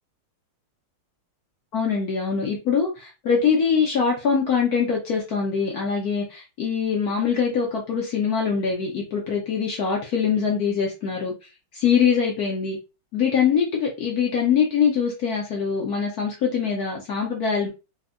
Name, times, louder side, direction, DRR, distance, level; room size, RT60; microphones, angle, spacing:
voice 1, 1.7-11.3 11.7-12.8 13.1-17.7, left 6 dB, 70° left, -1 dB, 0.9 m, -23 dB
3.5 x 2.1 x 2.4 m, 0.29 s
omnidirectional pair, 2.2 m